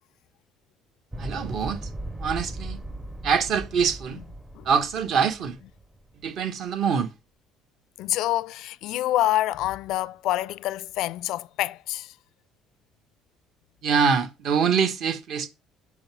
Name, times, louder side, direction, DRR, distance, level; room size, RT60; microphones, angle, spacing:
sound 1, 1.1-6.3, right 1 dB, 10° right, 0.6 m, -38 dB
voice 1, 1.2-1.9 2.2-2.8 3.2-4.2 4.6-5.6 6.2-7.1 13.8-15.5, right 6 dB, 55° right, 1.3 m, -24 dB
voice 2, 8.0-12.1, left 15 dB, 70° left, 0.3 m, -27 dB
6.0 x 5.1 x 6.1 m
cardioid pair, 135°, 0 cm